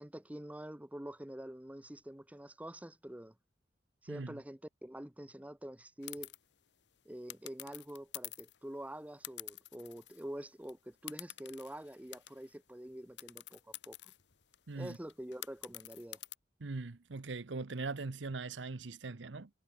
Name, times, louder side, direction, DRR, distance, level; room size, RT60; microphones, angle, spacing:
voice 1, 0.0-3.3 4.0-6.3 7.0-14.0 14.7-16.2, right 1 dB, 10° right, 0.8 m, -46 dB
voice 2, 4.1-4.4 14.7-15.0 16.6-19.5, right 3 dB, 90° right, 0.9 m, -41 dB
sound 1, 6.0-6.4 7.3-8.6 9.2-10.3 10.6-10.7 11.1-12.6 13.2-16.4, left 15 dB, 70° left, 1.1 m, -48 dB
head